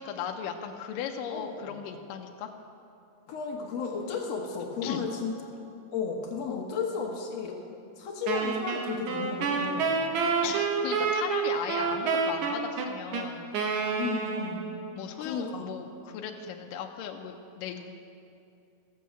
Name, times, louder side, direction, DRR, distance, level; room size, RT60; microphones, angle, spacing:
voice 1, 0.0-2.5 4.8-5.1 6.5-6.7 10.4-13.5 14.9-17.9, left 8 dB, 80° left, 4 dB, 2.1 m, -37 dB
voice 2, 1.3-1.7 3.3-5.3 5.9-7.6 8.0-9.9 13.9-14.7 15.2-15.6, left 5 dB, 60° left, 0 dB, 1.9 m, -33 dB
Wind instrument woodwind instrument, 8.3-14.8, right 5 dB, 70° right, 2.0 m, -28 dB
14.5 x 7.0 x 7.5 m, 2.6 s
omnidirectional pair, 4.3 m